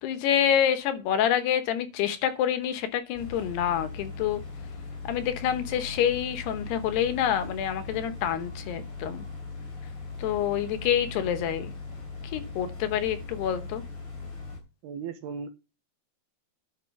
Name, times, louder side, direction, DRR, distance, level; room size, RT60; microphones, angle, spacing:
voice 1, 0.0-4.4 5.1-9.3 10.2-11.7 12.3-13.8, left 9 dB, 75° left, 3.0 m, -27 dB
sound 1, 3.1-14.6, left 3 dB, 30° left, 3.3 m, -39 dB
voice 2, 14.8-15.5, right 6 dB, 75° right, 3.0 m, -36 dB
10.5 x 6.2 x 5.7 m
omnidirectional pair, 5.1 m